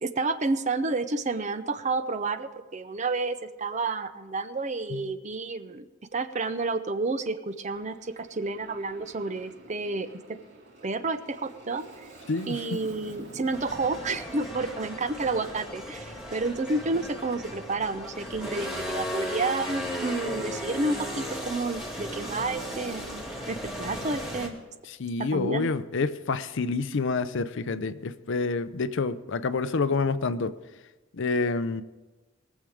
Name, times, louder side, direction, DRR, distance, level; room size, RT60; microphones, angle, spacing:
voice 1, 0.0-10.1 10.8-12.1 12.5-24.5 25.2-25.7, right 3 dB, 35° right, 11 dB, 0.6 m, -30 dB
Aircraft, 7.7-16.5, right 2 dB, 55° right, 2.3 m, -49 dB
voice 2, 12.3-12.6 24.9-30.5 31.1-31.8, left 4 dB, 60° left, 13 dB, 0.6 m, -28 dB
sound 1, 13.5-24.5, equal, ahead, 2.1 m, -36 dB
21.5 x 7.3 x 5.0 m, 1.2 s
head